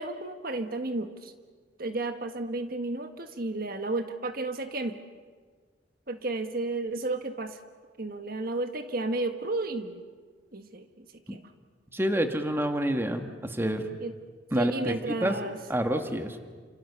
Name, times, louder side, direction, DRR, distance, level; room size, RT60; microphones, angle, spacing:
voice 1, 0.0-1.3 1.8-5.0 6.1-7.6 8.0-10.0 10.5-11.0 11.3-11.4 14.0-14.1 14.5-15.6, right 2 dB, 55° right, 7 dB, 1.5 m, -32 dB
voice 2, 11.9-13.8 14.5-15.4 15.7-16.4, right 1 dB, 15° right, 6 dB, 1.7 m, -28 dB
29.0 x 27.0 x 6.9 m, 1.5 s
head